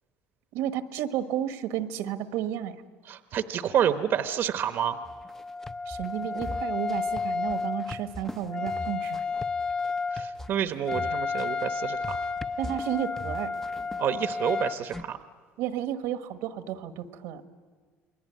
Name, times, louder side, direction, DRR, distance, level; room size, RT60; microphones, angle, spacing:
voice 1, 0.5-2.8 5.9-9.2 12.6-13.5 15.6-17.4, right 11 dB, 80° right, 9 dB, 1.4 m, -32 dB
voice 2, 3.1-5.0 10.1-12.2 14.0-15.2, right 9 dB, 55° right, 9 dB, 1.0 m, -28 dB
Wind instrument woodwind instrument, 4.8-14.8, left 4 dB, 25° left, 1.6 m, -32 dB
sound 1, 5.0-15.0, left 2 dB, 10° left, 0.7 m, -41 dB
28.5 x 21.0 x 9.2 m, 1.5 s
cardioid pair, 120°, 5 cm